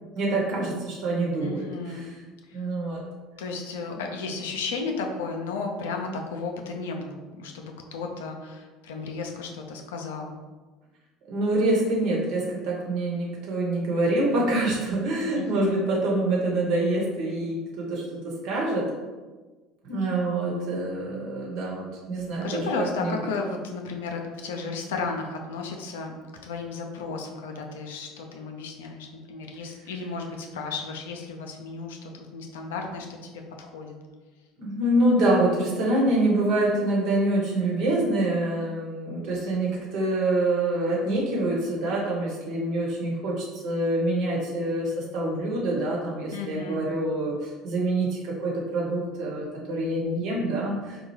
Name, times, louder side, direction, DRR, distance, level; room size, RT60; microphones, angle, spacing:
voice 1, 0.1-2.0 2.5-3.0 3.9-4.0 11.3-18.9 19.8-23.1 34.6-51.0, right 1 dB, 60° right, -3 dB, 1.2 m, -26 dB
voice 2, 1.4-2.1 2.5-2.7 3.4-10.4 15.3-15.8 22.2-26.1 26.4-33.9 46.3-46.8, left 4 dB, 75° left, 2 dB, 0.5 m, -34 dB
4.3 x 2.3 x 3.1 m, 1.3 s
hypercardioid pair, 70°, 0 cm